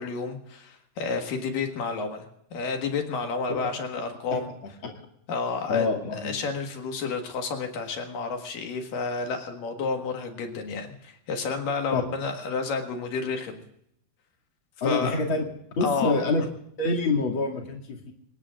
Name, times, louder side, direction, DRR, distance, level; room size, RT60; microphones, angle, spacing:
voice 1, 0.0-4.5 5.3-5.9 6.1-13.6 14.8-15.2 15.8-16.2, left 4 dB, 65° left, 4 dB, 3.1 m, -30 dB
voice 2, 5.7-6.4 11.9-12.0 14.8-15.4 15.8-16.4 16.8-18.1, left 3 dB, 35° left, 1 dB, 2.6 m, -26 dB
25.5 x 20.0 x 2.5 m, 0.71 s
omnidirectional pair, 4.5 m